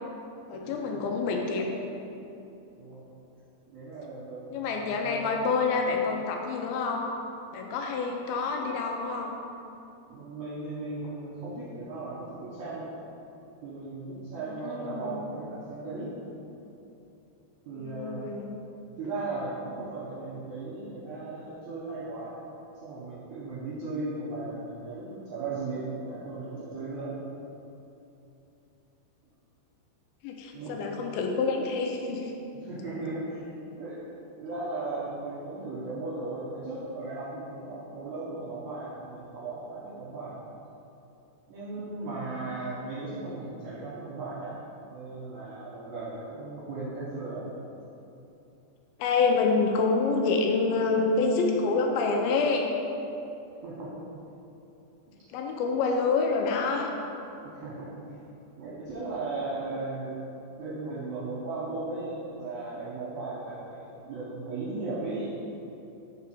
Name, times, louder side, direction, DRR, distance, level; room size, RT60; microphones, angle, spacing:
voice 1, 0.5-1.7 4.5-7.1 7.5-9.4 14.5-15.3 17.7-18.6 30.2-32.3 49.0-52.7 55.3-56.9, left 4 dB, 80° left, 2 dB, 2.3 m, -27 dB
voice 2, 2.7-3.1 3.7-5.3 10.1-12.9 13.6-16.1 17.7-18.3 19.0-22.3 22.8-27.1 30.5-30.8 32.6-33.5 33.7-34.0 34.4-40.4 41.5-44.5 44.8-47.4 53.5-54.1 55.1-55.2 57.5-57.9 58.6-60.2 60.6-65.4, right 3 dB, 70° right, -9 dB, 1.9 m, -36 dB
4.8 x 4.8 x 5.9 m, 2.9 s
omnidirectional pair, 4.5 m